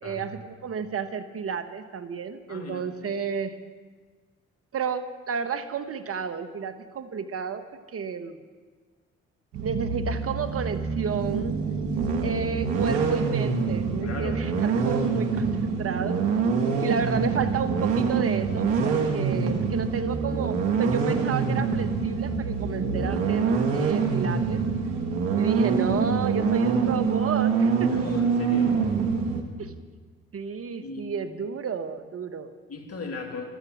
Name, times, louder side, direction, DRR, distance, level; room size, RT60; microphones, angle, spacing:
voice 1, 0.0-3.6 4.7-7.6 7.9-8.4 9.6-11.6 12.2-16.2 16.8-24.6 25.4-28.1 29.6-29.7 30.3-32.6, right 6 dB, 50° right, 10 dB, 1.1 m, -31 dB
voice 2, 2.5-3.0 14.0-14.5 27.9-28.9 30.8-31.1 32.7-33.4, left 3 dB, 55° left, 3 dB, 2.7 m, -37 dB
sound 1, 9.5-29.4, right 5 dB, 90° right, 1.4 m, -25 dB
13.0 x 13.0 x 7.3 m, 1.5 s
hypercardioid pair, 45°, 29 cm